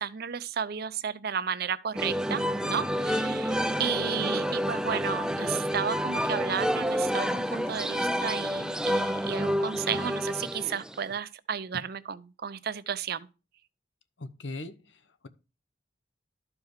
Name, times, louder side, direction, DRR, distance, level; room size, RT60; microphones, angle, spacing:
voice 1, 0.0-13.3, right 7 dB, 55° right, 0.6 m, -33 dB
sound 1, 2.0-11.1, equal, 5° right, 0.4 m, -29 dB
voice 2, 14.2-15.3, left 2 dB, 80° left, 0.9 m, -40 dB
12.5 x 4.8 x 4.8 m
head